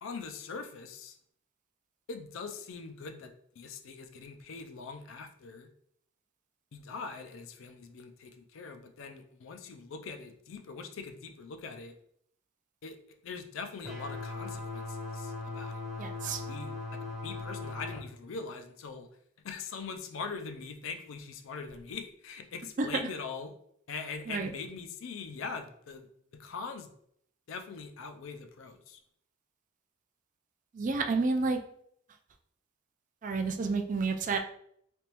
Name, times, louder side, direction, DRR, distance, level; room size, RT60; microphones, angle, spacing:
voice 1, 0.0-1.2 2.1-5.7 6.7-11.9 12.8-15.8 16.2-19.1 19.4-23.5 23.9-26.9 27.5-29.0, left 5 dB, 70° left, 7 dB, 0.4 m, -42 dB
sound 1, 13.8-18.0, left 3 dB, ahead, 0.7 m, -39 dB
voice 2, 16.0-16.4 22.8-22.9 24.3-24.5 30.7-31.6 33.2-34.4, right 4 dB, 40° right, 5 dB, 0.3 m, -30 dB
3.4 x 3.0 x 2.9 m, 0.68 s
head